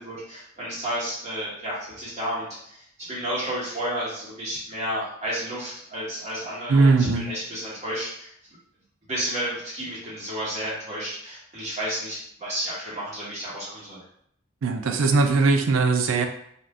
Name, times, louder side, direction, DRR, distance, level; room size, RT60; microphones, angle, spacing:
voice 1, 0.0-8.3 9.1-14.0, equal, 35° right, -8 dB, 1.3 m, -32 dB
voice 2, 6.7-7.3 14.6-16.3, right 3 dB, 70° right, 6 dB, 0.4 m, -20 dB
2.6 x 2.4 x 3.4 m, 0.69 s
head